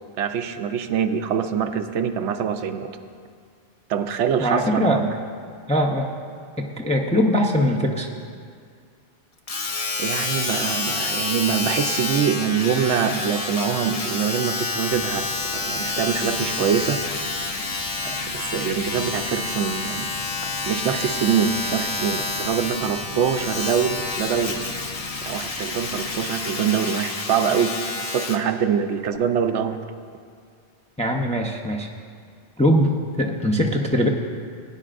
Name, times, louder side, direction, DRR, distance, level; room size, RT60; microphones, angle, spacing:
voice 1, 0.2-3.0 3.9-5.2 10.0-15.3 15.5-17.2 18.0-20.1 20.7-24.6 25.2-29.8, right 7 dB, 85° right, 8 dB, 0.9 m, -24 dB
voice 2, 4.4-5.0 5.7-6.1 6.6-8.1 31.0-31.9 32.6-34.1, equal, 10° left, 1 dB, 0.4 m, -21 dB
Domestic sounds home sounds, 9.5-28.5 29.2-29.3, left 3 dB, 35° left, 0.7 m, -28 dB
sound 1, 14.9-26.3, left 1 dB, 60° left, 2.4 m, -41 dB
17.0 x 9.8 x 2.5 m, 2.1 s
omnidirectional pair, 1.2 m